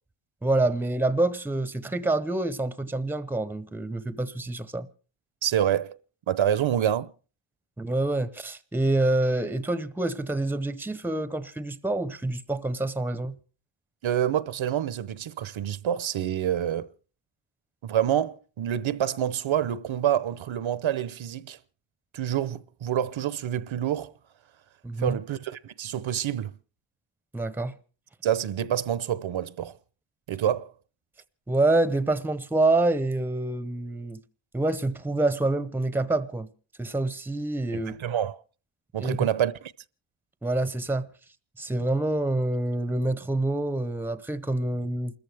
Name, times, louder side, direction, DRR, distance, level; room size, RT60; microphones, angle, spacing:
voice 1, 0.4-4.9 7.8-13.4 24.8-25.2 27.3-27.8 31.5-34.2 34.5-36.5 36.8-37.9 39.0-39.3 40.4-41.1 41.6-45.2, right 2 dB, 5° right, 0.7 m, -27 dB
voice 2, 5.4-6.0 6.3-7.1 14.0-16.9 17.8-21.6 22.1-24.1 25.0-26.5 28.2-29.7 30.3-30.7 37.7-38.4 38.9-39.5, right 10 dB, 70° right, 0.8 m, -27 dB
28.5 x 14.0 x 3.4 m
wide cardioid pair, 120°, 49 cm